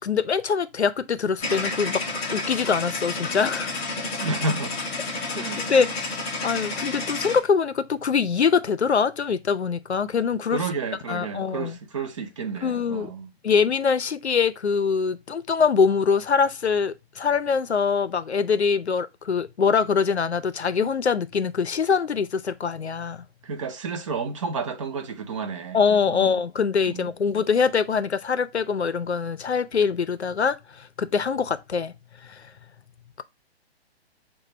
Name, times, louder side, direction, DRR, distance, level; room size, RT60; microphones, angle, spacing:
voice 1, 0.0-2.0 2.3-3.7 5.6-6.1 6.4-10.6 11.1-11.8 12.6-13.1 13.4-23.3 25.7-31.9 32.2-32.4, left 6 dB, 90° left, 0.6 m, -23 dB
sound 1, 1.4-7.4, left 3 dB, 15° left, 0.6 m, -30 dB
voice 2, 4.2-4.8 5.3-5.7 10.5-13.3 23.4-25.8 26.1-26.4 26.9-27.1, right 4 dB, 30° right, 0.5 m, -31 dB
4.8 x 2.2 x 4.2 m
figure-of-eight pair, 130°, 32 cm